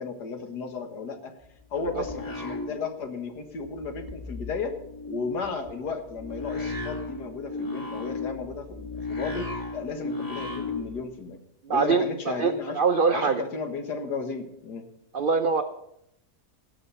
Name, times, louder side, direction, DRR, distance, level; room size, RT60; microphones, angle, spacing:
voice 1, 0.0-1.3 1.7-4.8 5.1-11.4 11.7-12.8 13.1-14.8, left 4 dB, 80° left, 6 dB, 2.0 m, -34 dB
sound 1, 1.4-3.3 3.6-11.0, left 3 dB, 10° left, 1.9 m, -35 dB
voice 2, 11.7-13.4 15.1-15.6, right 5 dB, 80° right, 7 dB, 0.4 m, -24 dB
17.5 x 6.1 x 5.5 m, 0.81 s
omnidirectional pair, 1.7 m